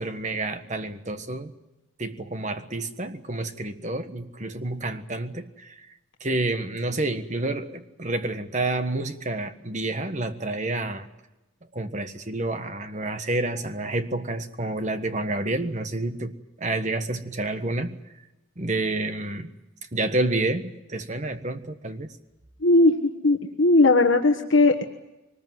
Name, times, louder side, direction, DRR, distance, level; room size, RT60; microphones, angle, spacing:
voice 1, 0.0-1.5 2.0-5.9 6.2-11.1 11.7-18.0 18.6-19.5 19.9-22.1, right 2 dB, 35° right, 9 dB, 1.4 m, -29 dB
voice 2, 22.6-22.9 23.2-24.8, left 2 dB, 70° left, 4 dB, 1.4 m, -18 dB
23.5 x 20.0 x 9.3 m, 1.0 s
head